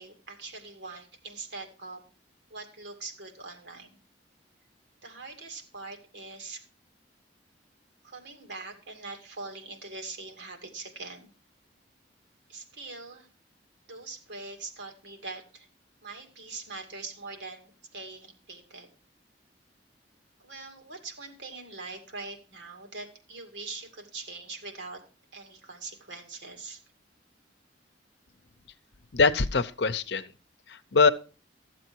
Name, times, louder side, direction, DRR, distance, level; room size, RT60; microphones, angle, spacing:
voice 1, 0.0-2.0 2.5-4.0 5.0-6.6 8.0-11.3 12.5-13.3 13.9-15.7 16.0-18.9 20.4-25.0 25.3-26.8, right 3 dB, 75° right, 2.3 m, -42 dB
voice 2, 29.1-30.3 30.9-31.1, left 4 dB, 70° left, 0.7 m, -22 dB
13.5 x 7.6 x 4.5 m
head